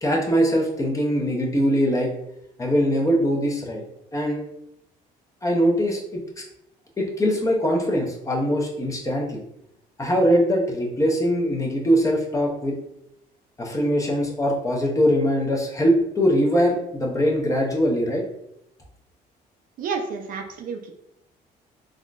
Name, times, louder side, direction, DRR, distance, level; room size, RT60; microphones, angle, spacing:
voice 1, 0.0-2.1 2.6-3.8 4.1-4.4 5.4-6.4 7.0-9.4 10.0-12.7 13.6-18.2, equal, 20° left, -1 dB, 0.7 m, -22 dB
voice 2, 19.8-20.9, right 5 dB, 55° right, 4 dB, 0.5 m, -30 dB
3.6 x 2.2 x 2.4 m, 0.79 s
cardioid pair, 110°, 17 cm